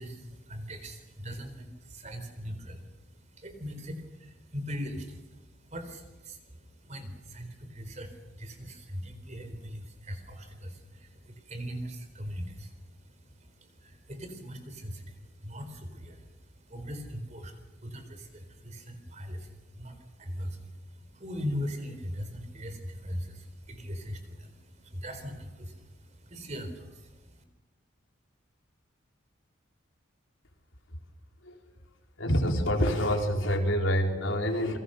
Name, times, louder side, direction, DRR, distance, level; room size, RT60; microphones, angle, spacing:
voice 1, 0.0-27.4, equal, 35° right, 8 dB, 4.1 m, -40 dB
voice 2, 32.2-34.8, equal, 75° left, 2 dB, 4.3 m, -26 dB
28.0 x 23.5 x 6.7 m, 1.1 s
head